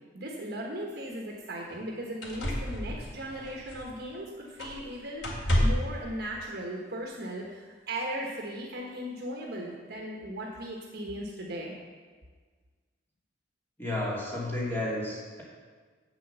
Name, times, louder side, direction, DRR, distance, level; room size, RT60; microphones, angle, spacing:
voice 1, 0.1-5.3 5.6-11.7, right 1 dB, 55° right, -1 dB, 1.3 m, -37 dB
sound 1, 0.9-1.0 1.7-1.8 2.2-4.2 4.6-4.9 5.2-6.0 7.1-7.2, equal, 80° left, 2.2 m, -30 dB
voice 2, 13.8-15.4, left 1 dB, 10° left, -6 dB, 2.6 m, -32 dB
8.0 x 7.6 x 6.8 m, 1.5 s
head